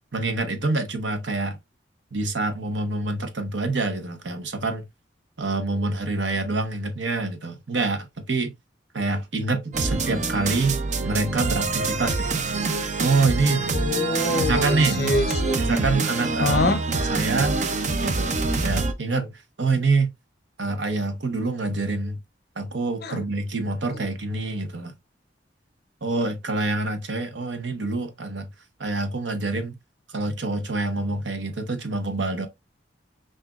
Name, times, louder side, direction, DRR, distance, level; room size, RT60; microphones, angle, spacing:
voice 1, 0.1-1.6 2.1-4.8 5.4-8.5 8.9-10.8 11.0-12.4 13.0-13.6 14.4-15.0 15.6-17.6 18.0-18.4 18.6-19.3 19.6-20.1 20.6-22.2 22.6-24.9 26.0-28.5 28.8-29.7 30.1-32.5, right 3 dB, 75° right, 0.9 m, -26 dB
sound 1, 9.7-18.9, right 3 dB, 40° right, 0.5 m, -25 dB
voice 2, 13.7-15.6 16.4-16.8 23.0-23.2 23.9-24.0, left 2 dB, 55° left, 0.6 m, -25 dB
5.9 x 2.6 x 2.3 m
head